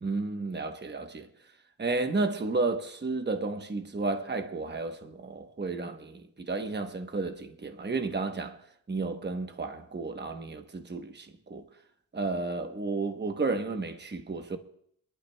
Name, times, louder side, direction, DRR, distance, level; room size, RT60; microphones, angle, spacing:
voice 1, 0.0-1.3 1.8-8.6 8.9-11.6 12.1-14.6, right 3 dB, 25° right, 1.0 m, -32 dB
26.0 x 12.0 x 2.3 m
wide cardioid pair, 110°, 40 cm